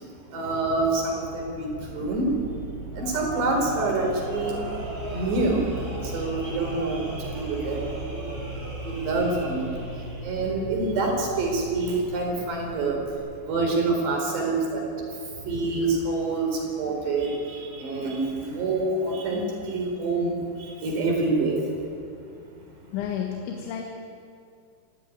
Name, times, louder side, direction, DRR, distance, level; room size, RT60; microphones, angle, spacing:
voice 1, 0.0-21.8, right 3 dB, 65° right, 1 dB, 6.5 m, -27 dB
sound 1, 0.5-13.1, right 1 dB, 80° right, 4.4 m, -38 dB
sound 2, 3.0-10.2, right 1 dB, 15° right, 6.2 m, -39 dB
voice 2, 22.9-23.8, left 8 dB, 75° left, 2 dB, 3.9 m, -31 dB
25.0 x 15.5 x 9.6 m, 2.4 s
omnidirectional pair, 5.4 m